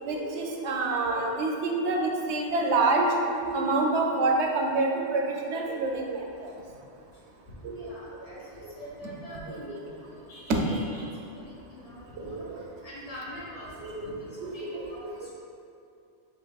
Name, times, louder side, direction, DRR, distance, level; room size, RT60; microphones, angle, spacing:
voice 1, 0.0-3.1 3.4-6.2 7.6-7.9 8.6-8.7 9.5-9.6 12.3-12.6 13.8-14.0 14.4-14.9, right 3 dB, 75° right, 0 dB, 0.9 m, -27 dB
voice 2, 7.4-9.8 10.1-12.4 12.8-14.1 14.5-15.3, equal, 80° left, -7 dB, 1.6 m, -44 dB
7.4 x 2.9 x 2.3 m, 2.5 s
omnidirectional pair, 1.2 m